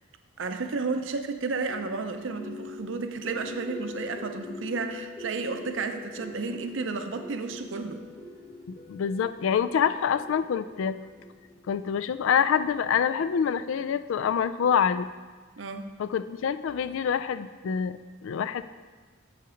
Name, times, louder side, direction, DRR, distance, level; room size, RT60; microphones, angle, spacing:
voice 1, 0.4-8.0 15.6-15.9, right 4 dB, 65° right, 7 dB, 0.6 m, -32 dB
sound 1, 1.7-11.8, left 3 dB, 30° left, 1.4 m, -43 dB
voice 2, 8.7-11.0 11.7-15.1 16.0-18.6, left 7 dB, 75° left, 12 dB, 0.3 m, -26 dB
7.1 x 5.7 x 5.0 m, 1.4 s
head